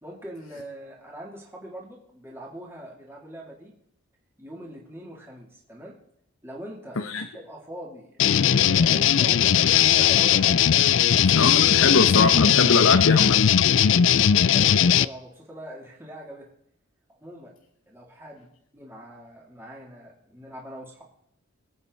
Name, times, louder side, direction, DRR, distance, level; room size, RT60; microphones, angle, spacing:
voice 1, 0.0-3.7 4.4-6.0 6.4-10.6 14.3-16.5 17.2-17.5 17.9-21.0, equal, 10° right, -3 dB, 3.1 m, -42 dB
sound 1, 8.2-15.0, left 9 dB, 65° left, 0.4 m, -19 dB
voice 2, 11.3-13.4, left 3 dB, 80° left, 6 dB, 1.0 m, -22 dB
24.0 x 8.9 x 4.1 m, 0.71 s
head